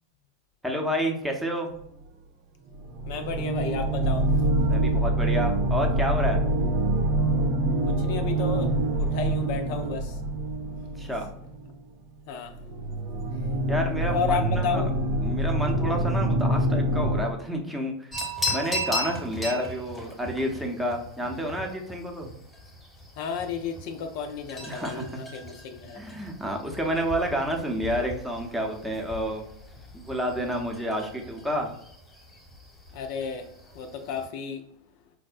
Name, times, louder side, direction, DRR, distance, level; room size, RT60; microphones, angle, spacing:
voice 1, 0.6-1.7 4.7-6.4 11.0-11.3 13.7-14.8 15.2-18.2 18.5-22.3 24.7-25.0 26.0-29.4 29.9-31.7, equal, 5° right, 0.7 m, -29 dB
sound 1, 1.8-1.9 2.7-11.7 12.4-17.2, right 1 dB, 55° right, 0.5 m, -25 dB
voice 2, 3.1-4.5 7.9-10.2 12.3-12.6 14.0-14.9 23.2-26.0 32.9-33.5 33.7-34.6, left 6 dB, 55° left, 0.4 m, -32 dB
Sound of the cow's bell in the Galician mountains, 18.1-34.3, left 1 dB, 15° left, 1.0 m, -38 dB
4.5 x 2.0 x 2.5 m
hypercardioid pair, 90°, 0 cm